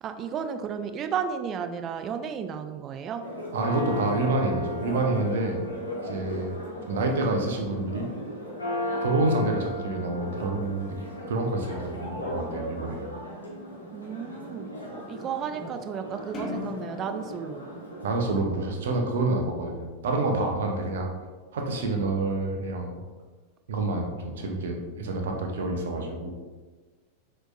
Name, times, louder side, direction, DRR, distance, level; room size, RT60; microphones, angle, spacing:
voice 1, 0.0-3.2 13.9-17.6, right 7 dB, 30° right, 8 dB, 0.3 m, -33 dB
Church bell, 3.2-18.2, equal, 90° left, 1.2 m, -36 dB
voice 2, 3.5-5.6 6.0-6.5 6.9-8.1 9.0-11.0 11.3-13.1 18.0-21.1 21.5-23.0 23.7-26.5, right 2 dB, 60° right, 3 dB, 0.7 m, -28 dB
sound 1, 16.3-18.9, left 3 dB, 25° left, 0.9 m, -39 dB
6.1 x 3.2 x 2.5 m, 1.3 s
figure-of-eight pair, 90°, 0 cm